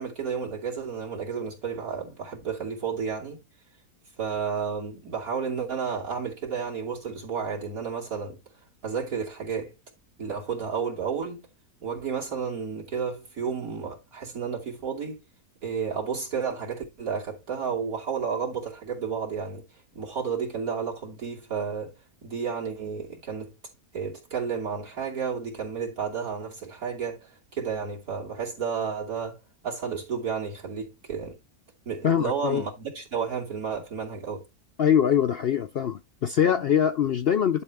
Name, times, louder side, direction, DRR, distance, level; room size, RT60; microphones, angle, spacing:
voice 1, 0.0-3.4 4.2-8.4 8.8-9.7 10.2-11.5 11.8-15.2 15.6-19.6 19.9-21.9 22.2-23.5 23.9-29.4 29.6-31.4 31.8-34.4, right 6 dB, 65° right, 3.2 m, -32 dB
voice 2, 32.0-32.6 34.8-37.6, left 9 dB, 75° left, 0.5 m, -23 dB
11.0 x 5.4 x 3.5 m
omnidirectional pair, 1.7 m